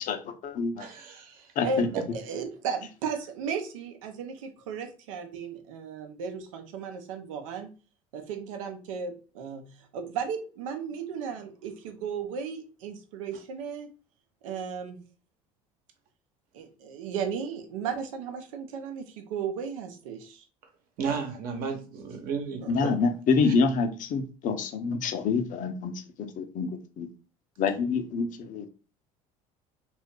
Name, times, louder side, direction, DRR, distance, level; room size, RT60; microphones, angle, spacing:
voice 1, 0.0-0.9 1.6-1.9 22.7-27.1 27.6-28.7, left 4 dB, 50° left, 7 dB, 0.7 m, -27 dB
voice 2, 0.8-1.4 21.0-23.1, right 5 dB, 60° right, 4 dB, 1.0 m, -34 dB
voice 3, 1.6-7.7 8.1-13.9 14.4-15.0 16.5-20.4 22.6-22.7, right 6 dB, 80° right, 6 dB, 0.6 m, -35 dB
2.7 x 2.5 x 3.6 m, 0.35 s
hypercardioid pair, 70°, 17 cm